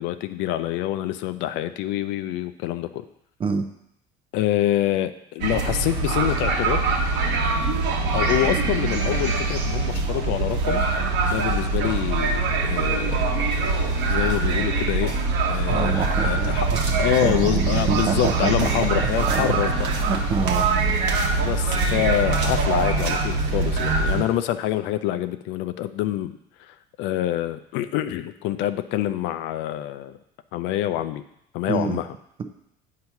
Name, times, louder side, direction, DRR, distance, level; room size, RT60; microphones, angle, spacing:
voice 1, 0.0-3.0 4.3-6.8 8.1-10.9 11.2-13.3 13.6-15.2 15.5-16.7 17.0-19.9 21.3-30.2 30.5-31.2 31.5-32.1, left 13 dB, 70° left, 11 dB, 0.5 m, -26 dB
sound 1, 5.4-24.2, right 3 dB, 65° right, 1.1 m, -23 dB
voice 2, 15.7-16.6 17.2-18.9 19.3-20.7 31.7-32.0, right 5 dB, 25° right, 7 dB, 0.6 m, -27 dB
7.9 x 2.9 x 5.8 m, 0.77 s
cardioid pair, 125°, 19 cm